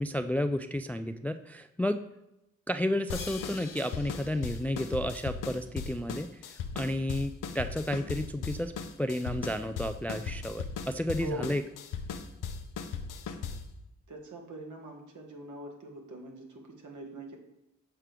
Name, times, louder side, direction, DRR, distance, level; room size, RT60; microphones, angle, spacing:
voice 1, 0.0-2.1 2.7-8.7 9.0-11.6, left 1 dB, 5° left, 9 dB, 0.3 m, -32 dB
sound 1, 3.1-13.8, left 6 dB, 75° left, 0.6 m, -38 dB
voice 2, 14.1-17.4, right 2 dB, 65° right, 1 dB, 1.6 m, -42 dB
7.4 x 4.4 x 3.3 m, 0.86 s
supercardioid pair, 40°, 33 cm